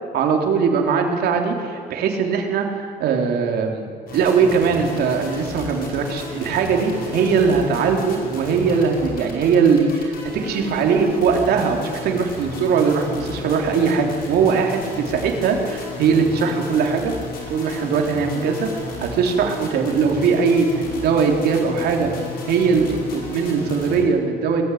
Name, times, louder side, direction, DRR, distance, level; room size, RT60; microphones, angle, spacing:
voice 1, 0.1-17.1 17.5-22.1 22.5-24.6, right 5 dB, 70° right, 2 dB, 3.6 m, -20 dB
sound 1, 4.1-24.0, left 3 dB, 60° left, 5.6 m, -34 dB
20.5 x 14.5 x 9.4 m, 2.2 s
cardioid pair, 110°, 17 cm